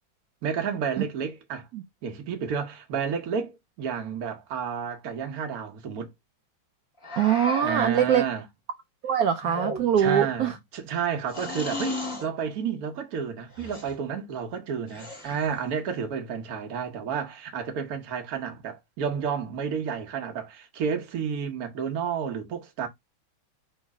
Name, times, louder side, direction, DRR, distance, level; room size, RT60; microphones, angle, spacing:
voice 1, 0.4-1.7 2.0-6.1 7.6-8.5 10.0-22.9, right 7 dB, 55° right, 1.3 m, -31 dB
sound 1, 7.0-7.9 9.4-10.2 11.3-12.3 13.5-14.0 14.9-15.6, left 2 dB, 20° left, 1.2 m, -35 dB
voice 2, 7.2-8.2 9.0-10.5, right 9 dB, 80° right, 0.8 m, -23 dB
3.2 x 3.2 x 4.7 m
omnidirectional pair, 2.1 m